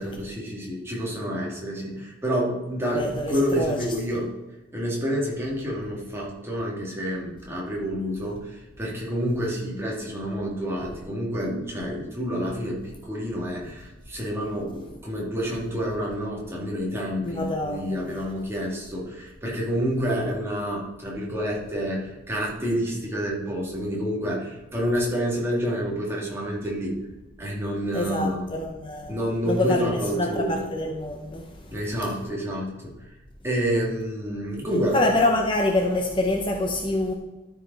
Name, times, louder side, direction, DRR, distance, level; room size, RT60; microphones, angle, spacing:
voice 1, 0.0-4.3 4.7-26.9 27.4-28.5 29.1-30.7 31.7-33.1 33.4-35.0, equal, 15° right, -4 dB, 2.3 m, -28 dB
voice 2, 2.9-3.8 17.2-18.2 27.9-29.1 29.5-31.7 34.9-37.1, left 2 dB, 25° left, 2 dB, 0.7 m, -26 dB
13.0 x 4.9 x 4.1 m, 1.1 s
head